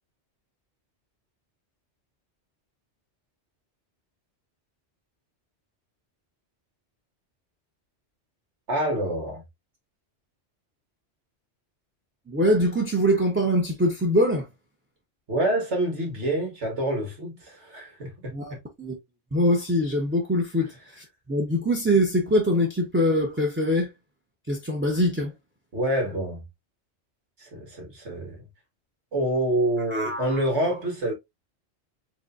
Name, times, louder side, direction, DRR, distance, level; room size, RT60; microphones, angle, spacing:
voice 1, 8.7-9.4 15.3-18.1 25.7-26.4 27.4-28.4 29.1-31.1, right 1 dB, 90° right, 2.2 m, -27 dB
voice 2, 12.3-14.5 18.3-19.0 19.3-23.9 24.5-25.3 29.9-30.4, equal, 10° right, 0.7 m, -23 dB
5.0 x 3.3 x 2.5 m
omnidirectional pair, 1.1 m